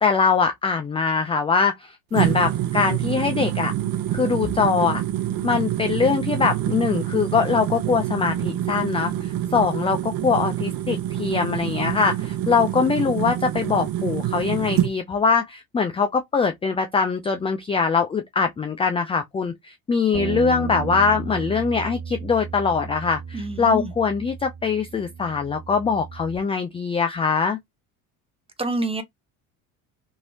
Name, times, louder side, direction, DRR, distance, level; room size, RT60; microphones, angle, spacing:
voice 1, 0.0-3.7 4.1-5.0 5.4-27.6, left 5 dB, 15° left, 0.4 m, -22 dB
sound 1, 2.1-14.9, right 12 dB, 50° right, 0.8 m, -26 dB
Bass guitar, 20.1-26.4, right 7 dB, 70° right, 1.1 m, -34 dB
voice 2, 23.3-23.9 28.6-29.0, right 2 dB, 10° right, 0.9 m, -27 dB
2.9 x 2.7 x 2.7 m
hypercardioid pair, 75°, 45 cm